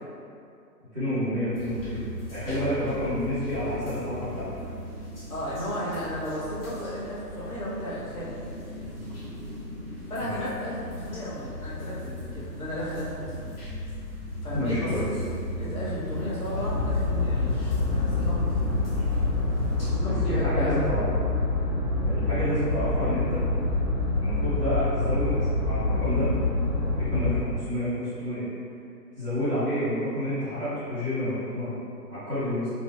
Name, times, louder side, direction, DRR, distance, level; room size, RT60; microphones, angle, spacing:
voice 1, 0.9-4.5 10.2-10.3 14.5-15.0 20.0-21.1 22.0-23.4 24.1-26.3 26.9-28.4 29.1-31.8 32.1-32.7, left 1 dB, 5° right, -17 dB, 0.6 m, -29 dB
sound 1, 1.5-19.9, equal, 35° left, 0.6 m, -37 dB
voice 2, 5.3-8.4 10.1-13.5 14.4-14.9 15.5-18.4 19.8-20.9 21.9-22.1, equal, 55° left, -8 dB, 1.1 m, -34 dB
sound 2, 16.5-27.4, left 2 dB, 75° left, 1.2 m, -26 dB
3.1 x 2.1 x 3.0 m, 2.5 s
figure-of-eight pair, 145°, 50 cm